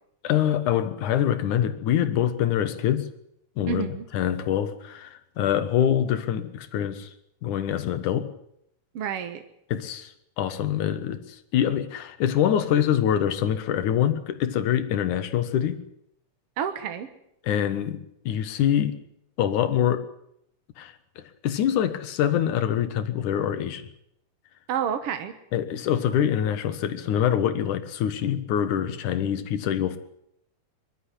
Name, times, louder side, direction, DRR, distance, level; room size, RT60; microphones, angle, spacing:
voice 1, 0.2-3.1 3.6-7.1 7.4-8.3 9.7-10.1 10.4-15.8 17.4-19.0 19.4-20.1 20.8-23.9 25.5-30.0, left 10 dB, 75° left, 11 dB, 2.8 m, -25 dB
voice 2, 3.7-4.0 8.9-9.4 16.6-17.1 24.7-25.3, right 8 dB, 60° right, 8 dB, 1.8 m, -29 dB
22.5 x 12.5 x 9.9 m, 0.75 s
omnidirectional pair, 3.6 m